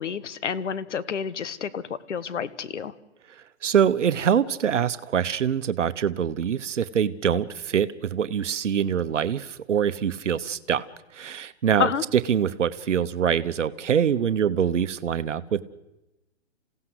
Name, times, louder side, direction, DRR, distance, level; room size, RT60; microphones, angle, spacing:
voice 1, 0.0-2.9 11.8-12.0, left 7 dB, 80° left, 17 dB, 1.5 m, -29 dB
voice 2, 3.6-10.9 11.1-15.6, right 8 dB, 85° right, 13 dB, 1.1 m, -24 dB
29.0 x 16.5 x 7.9 m, 0.99 s
hypercardioid pair, 160°, 35 cm